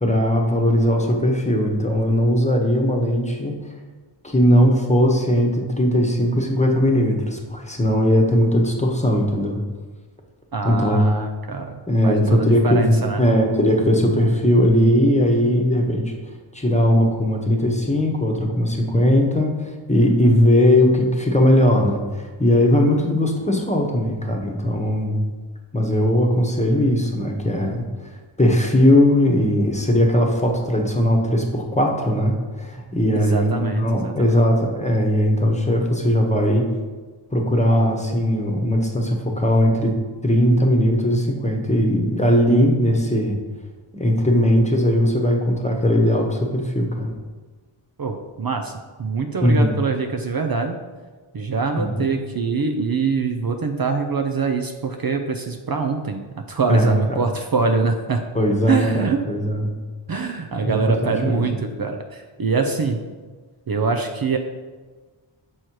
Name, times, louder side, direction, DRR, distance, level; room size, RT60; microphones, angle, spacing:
voice 1, 0.0-3.6 4.2-9.6 10.6-11.1 11.9-16.1 16.5-25.3 25.7-27.9 28.4-36.7 37.3-39.9 40.2-43.4 43.9-47.1 49.4-49.7 51.8-52.1 56.7-57.2 58.3-59.7 60.6-61.5, equal, 15° left, 1 dB, 1.1 m, -19 dB
voice 2, 10.5-13.2 33.1-34.4 48.0-48.7 49.0-50.8 51.3-56.2 56.5-58.2 58.7-59.2 60.1-63.0 63.7-64.4, right 4 dB, 50° right, 5 dB, 0.6 m, -24 dB
6.4 x 4.3 x 4.6 m, 1.4 s
wide cardioid pair, 55°, 49 cm